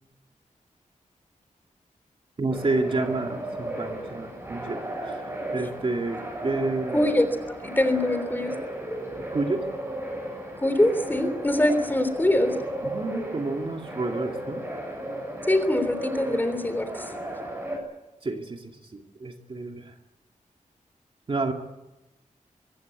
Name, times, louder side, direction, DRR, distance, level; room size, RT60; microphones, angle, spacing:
voice 1, 2.4-5.1 5.5-7.1 9.3-9.6 12.8-14.6 18.2-19.9 21.3-21.5, right 3 dB, 40° right, 3 dB, 2.4 m, -29 dB
sound 1, 2.5-17.8, right 1 dB, 20° right, 7.5 m, -35 dB
voice 2, 6.9-8.6 10.6-12.6 15.5-16.9, left 1 dB, 15° left, 9 dB, 3.4 m, -23 dB
24.5 x 16.0 x 9.5 m, 1.0 s
wide cardioid pair, 135°, 14 cm